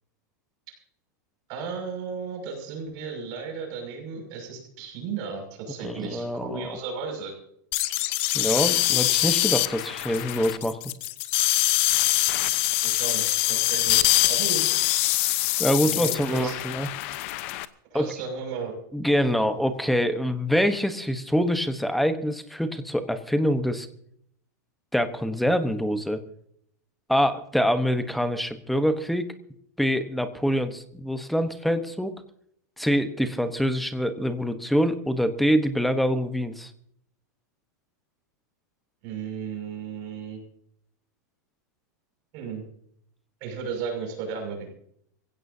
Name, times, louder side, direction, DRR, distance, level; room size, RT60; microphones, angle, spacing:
voice 1, 1.5-7.3 12.8-14.7 15.8-16.7 17.9-18.8 39.0-40.4 42.3-42.6 43.4-44.7, right 5 dB, 40° right, 3 dB, 6.3 m, -34 dB
voice 2, 5.8-6.7 8.3-10.8 15.6-16.9 17.9-18.1 18.9-23.9 24.9-26.2 27.1-29.3 29.8-32.1 32.8-36.7, equal, ahead, 9 dB, 1.0 m, -25 dB
sound 1, 7.7-17.6, left 17 dB, 45° left, 0.9 m, -24 dB
25.0 x 16.5 x 2.8 m, 0.67 s
supercardioid pair, 165°, 10 cm